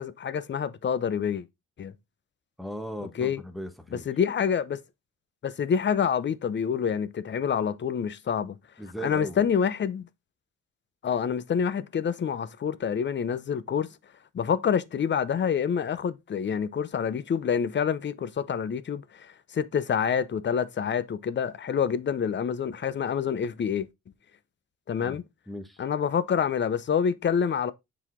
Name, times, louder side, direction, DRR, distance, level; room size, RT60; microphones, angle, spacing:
voice 1, 0.0-1.5 1.8-1.9 3.2-3.4 4.1-4.8 5.4-8.6 9.0-10.0 11.0-13.9 14.3-23.9 24.9-25.2 25.8-27.7, left 7 dB, 40° left, 0.7 m, -27 dB
voice 2, 2.6-4.1 8.8-9.5 25.0-25.2 25.5-25.8, equal, ahead, 1.3 m, -38 dB
7.1 x 4.2 x 3.7 m
cardioid pair, 90°, 30 cm